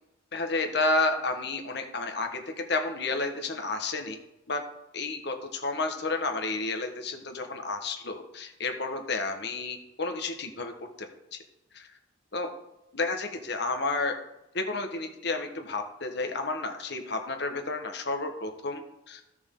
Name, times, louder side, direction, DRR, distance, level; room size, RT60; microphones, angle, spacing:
voice 1, 0.3-4.2 4.5-4.6 4.9-10.7 11.0-11.4 11.7-11.9 12.3-12.5 12.9-14.1 14.5-19.3, left 3 dB, 60° left, 5 dB, 1.4 m, -31 dB
14.0 x 6.1 x 3.8 m, 0.91 s
head